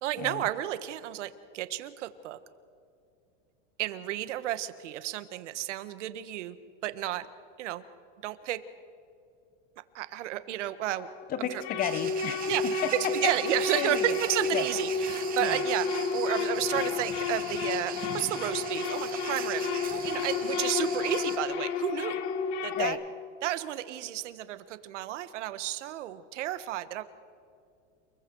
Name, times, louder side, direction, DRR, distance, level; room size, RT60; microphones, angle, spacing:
voice 1, 0.0-2.4 3.8-6.6 6.8-7.3 7.6-7.8 8.2-8.6 9.9-11.1 11.4-11.6 12.5-22.2 22.6-23.0 23.4-27.0, right 13 dB, 80° right, 12 dB, 1.5 m, -32 dB
sound 1, 10.9-22.9, left 4 dB, 65° left, 2.1 m, -31 dB
voice 2, 11.3-12.4 12.8-12.9 13.7-14.1 14.5-14.6 15.4-15.6 22.7-23.0, left 9 dB, 25° left, 13 dB, 1.0 m, -32 dB
sound 2, 11.8-21.4, right 9 dB, 25° right, 2.0 m, -41 dB
29.5 x 22.0 x 4.7 m, 2.5 s
supercardioid pair, 160°, 36 cm